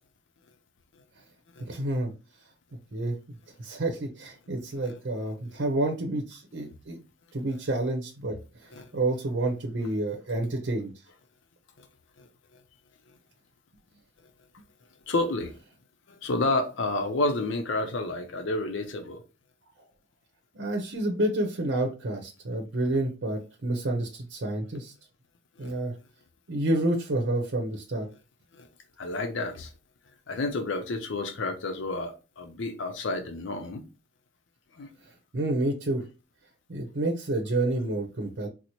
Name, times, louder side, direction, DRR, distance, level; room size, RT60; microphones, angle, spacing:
voice 1, 1.6-2.1 2.9-3.1 3.6-7.0 7.3-8.4 8.9-10.9 20.5-24.9 25.6-25.9 26.5-28.1 35.3-36.0 36.7-38.5, right 2 dB, 75° right, 0.7 m, -29 dB
voice 2, 15.1-15.5 16.2-19.2 25.6-25.7 29.0-29.7 30.3-33.8 34.8-34.9, left 2 dB, 85° left, 0.6 m, -30 dB
4.1 x 2.0 x 2.9 m
head